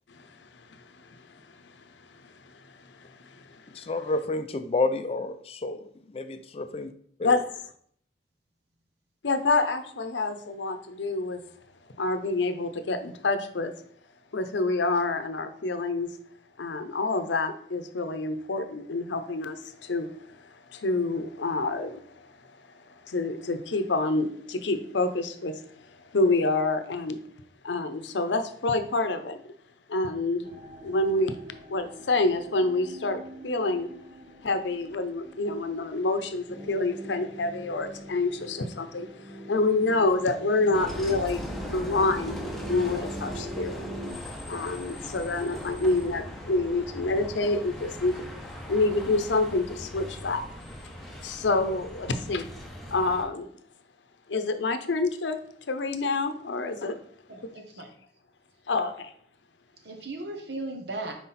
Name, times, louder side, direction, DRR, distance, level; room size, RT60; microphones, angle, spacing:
voice 1, 0.1-1.7 2.1-3.9 7.2-7.4 9.2-11.4 12.0-13.7 14.3-16.1 16.6-22.5 23.0-27.2 27.6-29.4 29.9-30.5 30.8-31.4 31.7-33.9 34.4-43.9 44.5-52.5 52.9-53.5 54.3-55.4 55.7-57.0 58.7-59.1, left 2 dB, 90° left, 9 dB, 0.6 m, -28 dB
voice 2, 3.7-6.9 7.2-7.4, left 3 dB, 35° left, 10 dB, 0.4 m, -30 dB
sound 1, 30.4-41.6 41.9-42.5 43.1-43.2, right 1 dB, 40° right, 0.9 m, -50 dB
sound 2, 36.5-44.1, right 1 dB, 15° right, 1.2 m, -40 dB
Bus, 40.7-53.2, equal, ahead, 0.9 m, -40 dB
voice 3, 57.3-57.9 59.8-61.1, right 2 dB, 75° right, 4 dB, 1.1 m, -36 dB
5.8 x 4.6 x 4.1 m, 0.63 s
head